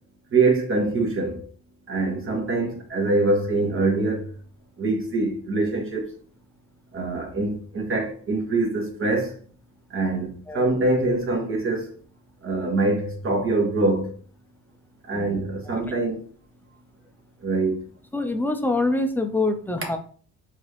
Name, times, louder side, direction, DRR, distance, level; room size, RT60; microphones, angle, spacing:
voice 1, 0.3-1.4 1.9-4.3 4.8-6.1 6.9-9.3 9.9-11.9 12.4-14.1 15.0-16.2 17.4-17.8, right 3 dB, 45° right, 1.6 m, -24 dB
voice 2, 18.1-20.0, left 2 dB, 5° left, 0.7 m, -25 dB
4.5 x 2.9 x 3.3 m
cardioid pair, 90°, 30 cm